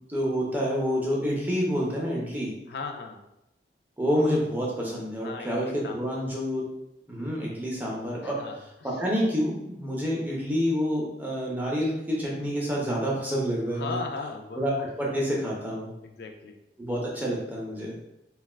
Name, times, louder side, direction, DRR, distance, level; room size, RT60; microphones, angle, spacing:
voice 1, 0.1-2.5 4.0-6.7 7.1-8.4 8.8-14.0 14.5-15.9 16.8-17.9, equal, 10° right, -4 dB, 0.6 m, -28 dB
voice 2, 2.7-3.2 5.2-6.2 8.2-8.6 8.8-9.0 13.7-14.6 16.0-16.6, left 4 dB, 65° left, 3 dB, 0.3 m, -37 dB
3.2 x 2.3 x 2.3 m, 0.87 s
head